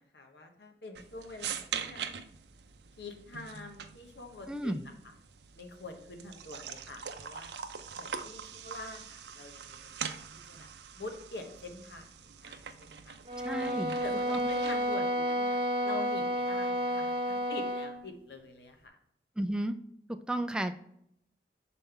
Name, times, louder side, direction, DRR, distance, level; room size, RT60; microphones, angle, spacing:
voice 1, 0.0-2.1 3.0-4.7 5.5-7.5 8.0-10.2 10.5-10.7 11.0-13.2 14.0-15.6 15.8-18.9, left 3 dB, 70° left, 4 dB, 1.1 m, -45 dB
sound 1, 0.9-14.9, right 7 dB, 75° right, 0.5 m, -43 dB
voice 2, 4.5-4.8 13.4-14.0 14.3-14.4 19.4-19.8 20.1-20.8, right 1 dB, 5° right, 7 dB, 0.3 m, -33 dB
sound 2, 13.3-18.0, equal, 30° right, 0.8 m, -31 dB
6.7 x 4.1 x 3.7 m, 0.75 s
head